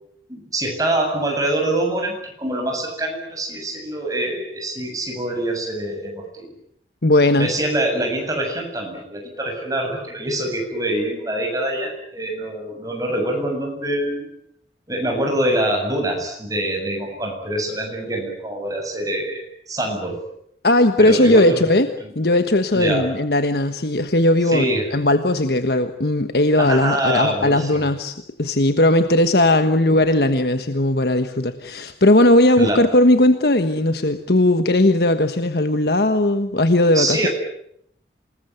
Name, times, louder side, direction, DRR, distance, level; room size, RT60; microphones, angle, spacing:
voice 1, 0.3-6.5 7.4-14.3 14.9-20.2 21.0-21.6 22.0-22.1 22.7-23.1 24.5-24.9 26.6-27.8 32.6-32.8 36.9-37.3, right 1 dB, 20° right, 2 dB, 7.7 m, -25 dB
voice 2, 7.0-7.5 20.6-21.9 22.1-37.3, left 1 dB, 60° left, 8 dB, 1.3 m, -17 dB
27.5 x 20.5 x 9.4 m, 0.72 s
head